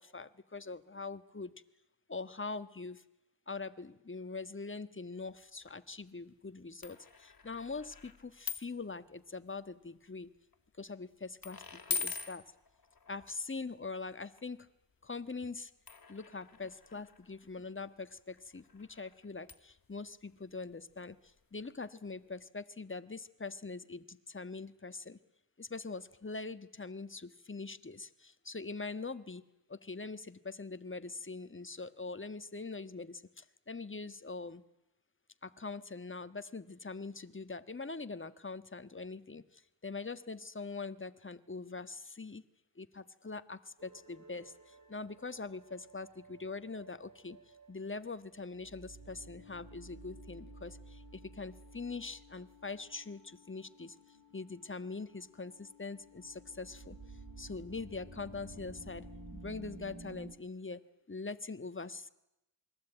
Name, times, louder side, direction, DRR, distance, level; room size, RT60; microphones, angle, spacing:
voice 1, 0.0-1.5 2.1-3.0 3.5-10.3 10.8-12.4 13.1-14.7 15.0-15.7 16.1-25.2 25.6-29.4 29.7-34.6 35.4-42.4 42.7-47.4 47.7-54.0 54.3-59.1 59.3-62.1, left 3 dB, 25° left, 12 dB, 1.5 m, -43 dB
sound 1, 5.3-5.7 6.8-8.9 9.2-9.6 10.2-10.5 11.4-13.4 14.4-14.5 15.9-21.4 21.6-21.7 22.1-22.2, left 5 dB, 45° left, 2.4 m, -44 dB
sound 2, 43.8-60.3, right 2 dB, 40° right, 3.2 m, -53 dB
28.0 x 22.0 x 9.1 m, 0.88 s
wide cardioid pair, 80°, 47 cm